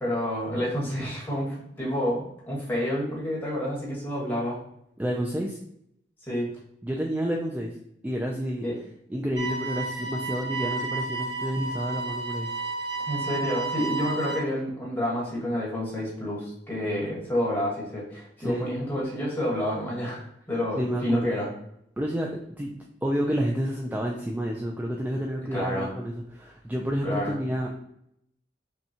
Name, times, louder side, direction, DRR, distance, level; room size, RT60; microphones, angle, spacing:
voice 1, 0.0-4.6 6.3-6.5 8.6-8.7 13.1-21.5 25.5-25.9 27.0-27.3, equal, 10° left, -5 dB, 1.3 m, -29 dB
voice 2, 5.0-5.6 6.8-7.8 8.0-8.7 9.1-12.5 18.4-18.7 20.8-21.4 22.0-22.3 22.6-27.7, equal, 10° right, -1 dB, 0.3 m, -29 dB
sound 1, 9.4-14.4, right 3 dB, 65° right, 1.5 m, -32 dB
5.4 x 2.2 x 2.7 m, 0.74 s
head